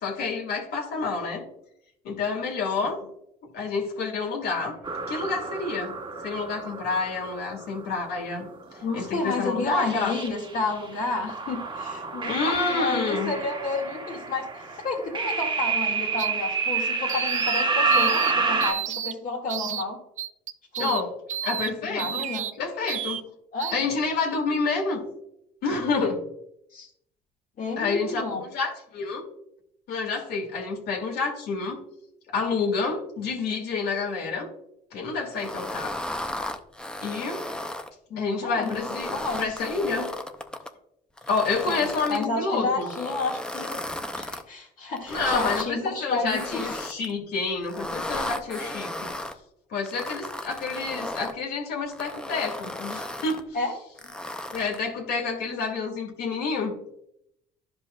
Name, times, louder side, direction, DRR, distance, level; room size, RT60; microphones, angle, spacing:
voice 1, 0.0-1.5 2.0-3.0 3.4-4.8 5.1-5.9 6.2-8.5 8.9-10.1 12.3-13.3 20.8-21.1 21.4-22.3 22.6-23.2 23.7-25.0 25.6-26.2 27.8-29.2 29.9-31.8 32.3-34.5 34.9-36.0 37.0-37.4 38.2-40.1 41.3-42.9 45.1-49.1 49.7-53.5 54.5-56.7, left 4 dB, 70° left, 1 dB, 1.8 m, -28 dB
sound 1, 4.8-8.1 8.8-9.1 9.4-10.8 11.3-18.7, right 4 dB, 30° right, 1.2 m, -28 dB
voice 2, 8.8-20.0 20.8-21.0 21.4-21.6 21.8-22.5 23.5-23.8 26.7-26.9 27.6-28.4 38.1-39.6 41.7-43.8 44.1-46.8 53.5-53.7, left 3 dB, 55° left, -4 dB, 1.7 m, -31 dB
sound 2, 16.2-16.3 17.1-17.6 17.9-18.3 18.6-19.1 19.5-19.8 20.2-21.0 21.3-21.7 22.0-22.5 22.9-23.2 23.6-23.7, right 10 dB, 45° right, 0.4 m, -31 dB
sound 3, 35.3-37.9 38.5-40.7 41.2-42.3 42.8-44.4 45.0-45.7 46.3-47.1 47.6-49.3 49.9-51.4 51.9-53.4 54.0-54.9, left 1 dB, 5° left, 0.5 m, -34 dB
12.0 x 5.2 x 2.2 m, 0.77 s
cardioid pair, 110°, 17 cm